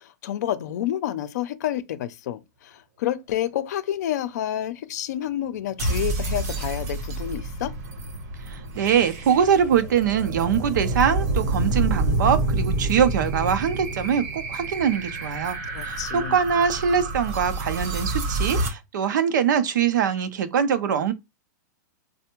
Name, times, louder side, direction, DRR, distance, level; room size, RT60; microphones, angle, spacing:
voice 1, 0.0-7.7 15.7-16.4, left 11 dB, 60° left, 0.5 m, -29 dB
sound 1, 5.8-18.7, right 2 dB, 55° right, 0.9 m, -28 dB
voice 2, 8.5-15.6 15.8-21.1, right 7 dB, 75° right, 0.6 m, -23 dB
3.3 x 2.1 x 3.0 m
supercardioid pair, 155°, 10 cm